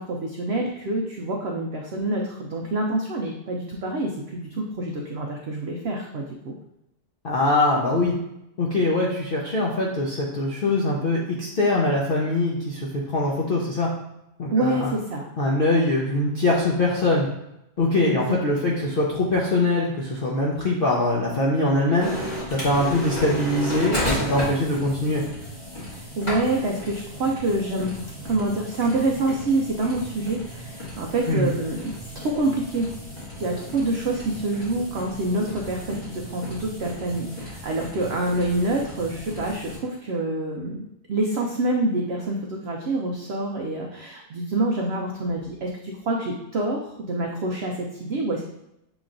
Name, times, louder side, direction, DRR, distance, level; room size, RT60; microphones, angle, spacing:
voice 1, 0.0-6.5 14.5-15.3 18.0-18.7 25.9-31.8 32.1-32.9 33.4-40.8 41.1-46.8 47.1-48.5, right 2 dB, 75° right, 0 dB, 0.5 m, -26 dB
voice 2, 7.2-8.1 8.6-13.9 14.4-14.9 15.4-17.3 17.8-22.1 22.5-25.2 31.3-31.5, left 2 dB, 65° left, -3 dB, 0.5 m, -22 dB
sound 1, 22.0-39.8, equal, 30° left, 1.8 m, -34 dB
6.9 x 3.0 x 2.5 m, 0.85 s
omnidirectional pair, 1.7 m